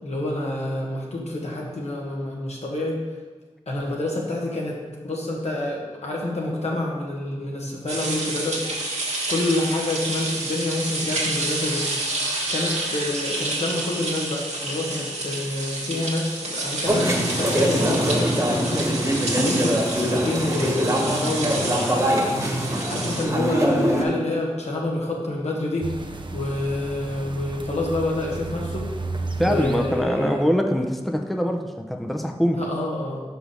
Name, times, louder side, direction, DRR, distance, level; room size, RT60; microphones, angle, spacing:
voice 1, 0.0-3.0 3.7-8.6 8.9-9.0 9.3-11.8 12.5-21.8 22.2-28.9 29.4-30.4 32.5-33.2, left 2 dB, 80° left, -2 dB, 1.4 m, -28 dB
sound 1, 7.9-23.2, right 2 dB, 80° right, 1.5 m, -29 dB
sound 2, 16.9-24.0, equal, 30° right, 1.5 m, -23 dB
sound 3, 25.8-30.1, right 3 dB, 45° right, 0.6 m, -33 dB
voice 2, 29.4-32.7, equal, ahead, 3 dB, 0.6 m, -23 dB
5.1 x 5.0 x 6.4 m, 1.4 s
wide cardioid pair, 50°, 11 cm